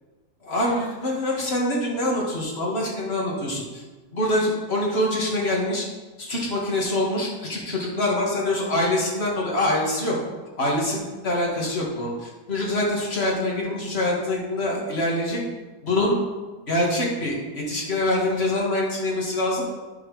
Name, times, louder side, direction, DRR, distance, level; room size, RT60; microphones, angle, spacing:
voice 1, 0.4-3.8 4.1-5.8 6.2-10.1 10.6-15.4 15.8-16.1 16.7-19.6, left 1 dB, 25° left, -3 dB, 1.5 m, -25 dB
10.5 x 5.0 x 4.9 m, 1.3 s
omnidirectional pair, 3.3 m